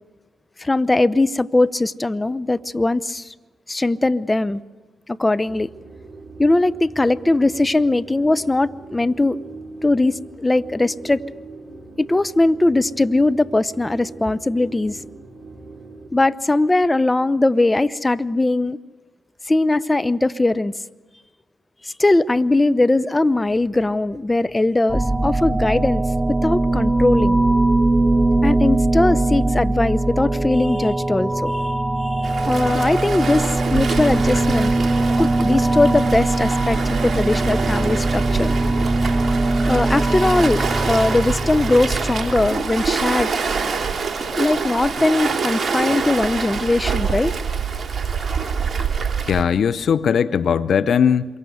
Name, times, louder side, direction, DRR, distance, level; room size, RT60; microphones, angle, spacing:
voice 1, 0.6-3.3 3.7-4.6 5.1-5.7 6.4-9.4 9.8-11.2 12.0-15.0 16.1-18.8 19.5-20.7 21.8-26.0 26.4-27.4 28.4-31.7 32.0-34.7 35.2-38.5 39.7-43.3 44.3-47.3, left 2 dB, 20° left, 0.9 m, -20 dB
sound 1, 5.5-16.1, right 3 dB, 30° right, 7.3 m, -40 dB
sound 2, 24.9-42.5, right 2 dB, 10° right, 0.9 m, -21 dB
Waves surf, 32.2-49.4, right 5 dB, 45° right, 3.4 m, -26 dB
voice 2, 49.3-51.3, left 7 dB, 60° left, 0.7 m, -19 dB
27.5 x 23.5 x 8.1 m
hypercardioid pair, 40°, 0 cm